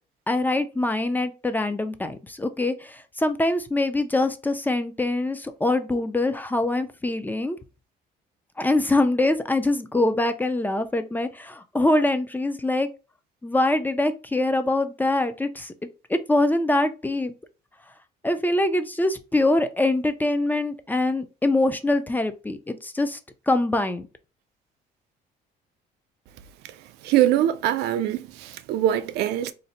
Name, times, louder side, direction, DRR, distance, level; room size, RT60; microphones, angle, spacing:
voice 1, 0.3-7.6 8.6-12.9 13.4-15.7 16.1-17.3 18.2-23.2 23.5-24.1, left 2 dB, 10° left, 0.3 m, -24 dB
voice 2, 27.0-29.5, right 12 dB, 80° right, 0.4 m, -23 dB
2.6 x 2.0 x 4.0 m
cardioid pair, 110°, 17 cm